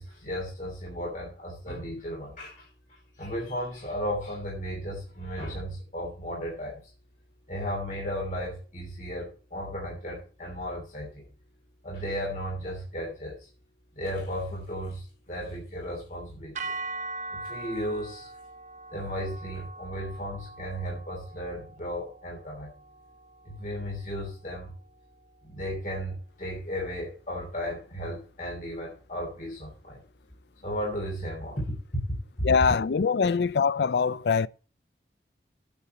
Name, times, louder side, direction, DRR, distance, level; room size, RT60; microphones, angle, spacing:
voice 1, 0.0-2.7 3.2-6.8 7.5-11.2 11.8-13.5 14.0-16.5 17.3-18.3 18.9-22.7 23.4-24.7 25.4-30.0 30.6-32.0 32.4-32.5, equal, 45° left, 3.2 m, -35 dB
sound 1, 16.5-24.8, right 3 dB, 45° right, 0.8 m, -41 dB
voice 2, 32.4-34.5, left 5 dB, 75° left, 0.4 m, -23 dB
8.7 x 6.0 x 7.9 m
head